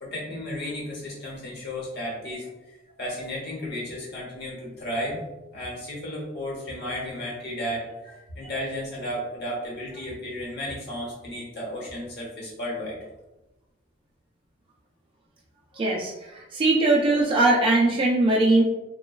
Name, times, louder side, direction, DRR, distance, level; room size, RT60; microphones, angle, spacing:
voice 1, 0.0-2.5 3.0-5.2 5.5-13.0, left 1 dB, 60° left, -4 dB, 1.0 m, -33 dB
voice 2, 15.8-18.6, right 2 dB, 30° right, -2 dB, 0.3 m, -21 dB
2.9 x 2.2 x 2.3 m, 1.0 s
head